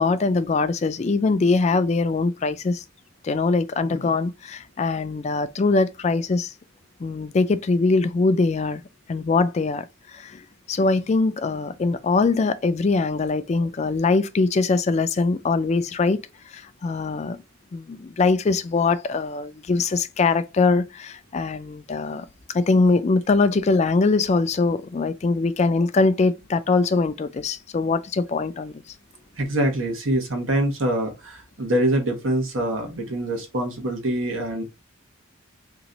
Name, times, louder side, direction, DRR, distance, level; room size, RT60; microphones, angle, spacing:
voice 1, 0.0-2.8 3.2-6.5 7.0-8.8 9.1-10.4 10.7-16.2 16.5-17.4 17.7-22.3 22.5-28.8, left 3 dB, 35° left, 0.3 m, -22 dB
voice 2, 29.4-34.6, right 1 dB, 85° right, 1.2 m, -24 dB
3.0 x 2.5 x 3.9 m
head